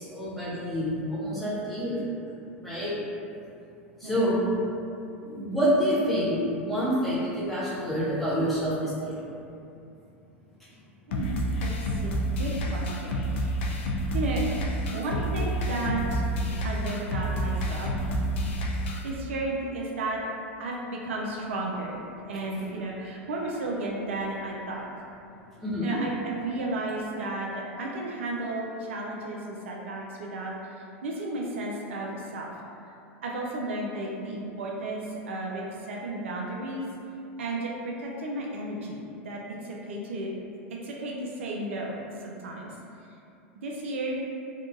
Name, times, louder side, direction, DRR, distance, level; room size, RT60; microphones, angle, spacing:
voice 1, 0.0-2.1 2.6-3.0 4.0-4.5 5.3-9.3 25.6-26.0, equal, ahead, -11 dB, 1.0 m, -27 dB
sound 1, 11.1-19.1, equal, 70° left, 0.3 m, -29 dB
voice 2, 11.1-13.5 14.1-14.5 14.9-16.3 16.6-17.9 19.0-20.3 20.6-22.0 22.3-25.0 25.8-32.5 33.2-36.9 37.4-40.3 40.7-42.8 43.6-44.2, right 2 dB, 75° right, -2 dB, 0.4 m, -33 dB
2.6 x 2.3 x 2.4 m, 2.6 s
hypercardioid pair, 90°, 7 cm